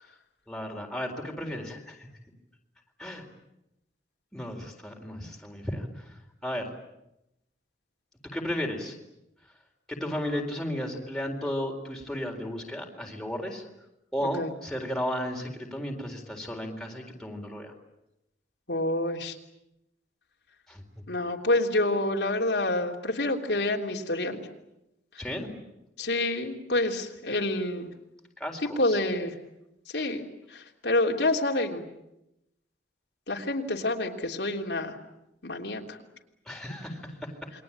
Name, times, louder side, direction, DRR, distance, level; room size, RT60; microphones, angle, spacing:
voice 1, 0.5-2.1 3.0-3.2 4.3-6.7 8.2-9.0 9.9-13.6 14.1-17.7 20.7-20.8 25.2-25.5 28.4-29.0 36.5-37.5, equal, 5° left, 0 dB, 4.0 m, -34 dB
voice 2, 18.7-19.4 21.1-24.4 26.0-27.9 28.8-29.3 29.9-30.2 30.5-31.8 33.3-34.9 35.4-36.0, left 2 dB, 80° left, 1 dB, 3.3 m, -27 dB
28.5 x 23.0 x 8.8 m, 0.87 s
head